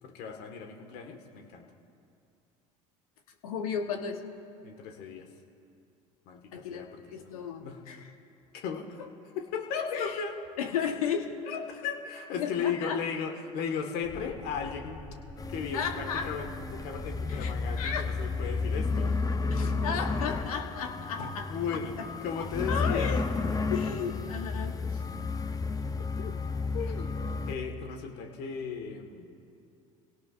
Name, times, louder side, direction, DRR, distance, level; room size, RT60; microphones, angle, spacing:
voice 1, 0.0-1.7 4.6-5.3 6.3-7.8 8.5-9.0 9.3-10.4 11.5-15.0 15.5-19.1 21.5-22.0 22.2-23.2 26.2-26.4 26.7-27.2 27.5-29.3, left 6 dB, 60° left, 3 dB, 1.8 m, -36 dB
voice 2, 3.4-4.2 6.5-8.0 9.7-10.1 10.6-11.3 12.4-13.0 15.7-16.3 17.3-17.5 17.8-18.1 19.5-21.5 22.0-22.1 22.4-23.3 23.7-25.0, left 7 dB, 80° left, 5 dB, 1.3 m, -34 dB
sound 1, 14.0-19.3, left 2 dB, 40° left, 3.8 m, -46 dB
sound 2, 15.4-27.6, left 4 dB, 20° left, 0.9 m, -32 dB
27.5 x 17.5 x 2.6 m, 2.5 s
hypercardioid pair, 70°, 18 cm